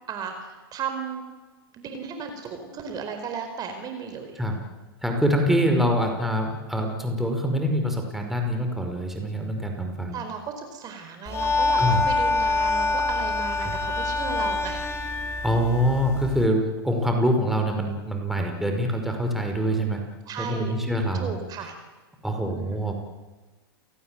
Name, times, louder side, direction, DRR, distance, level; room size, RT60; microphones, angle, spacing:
voice 1, 0.1-1.2 1.7-4.4 10.1-14.8 20.3-20.7 21.2-21.7 22.5-22.9, right 6 dB, 30° right, 6 dB, 4.6 m, -35 dB
voice 2, 5.0-10.2 11.8-12.0 13.6-13.8 15.4-20.0 20.4-21.3 21.6-21.7 22.2-22.9, equal, ahead, 3 dB, 5.3 m, -25 dB
sound 1, 11.3-16.5, left 3 dB, 20° left, 3.2 m, -25 dB
29.5 x 18.5 x 9.3 m, 1.3 s
hypercardioid pair, 105°, 13 cm